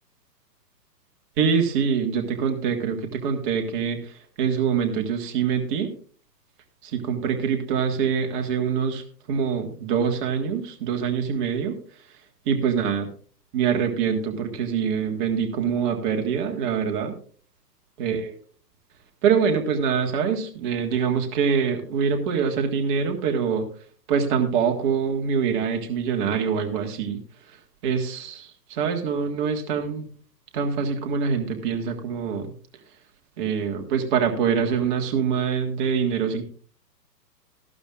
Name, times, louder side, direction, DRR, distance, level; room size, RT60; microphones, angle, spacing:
voice 1, 1.4-5.9 6.8-9.0 9.3-11.8 12.5-13.1 13.5-17.1 18.0-18.3 19.2-23.7 24.1-27.2 27.8-30.1 30.5-32.5 33.4-36.4, right 6 dB, 30° right, 3 dB, 1.7 m, -24 dB
14.5 x 12.0 x 2.5 m, 0.43 s
hypercardioid pair, 135°, 50 cm